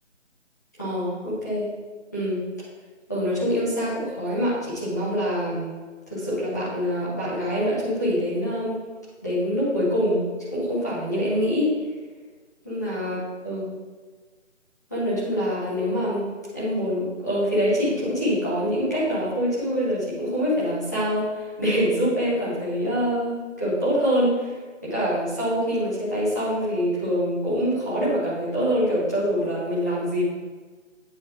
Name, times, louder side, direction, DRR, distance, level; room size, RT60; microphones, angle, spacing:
voice 1, 0.8-1.7 2.1-2.4 3.1-5.7 6.1-8.8 9.2-10.2 10.5-11.7 12.6-13.7 14.9-16.3 16.5-24.5 24.8-30.2, equal, 15° left, -11 dB, 1.3 m, -25 dB
9.3 x 5.1 x 2.9 m, 1.4 s
figure-of-eight pair, 180°, 37 cm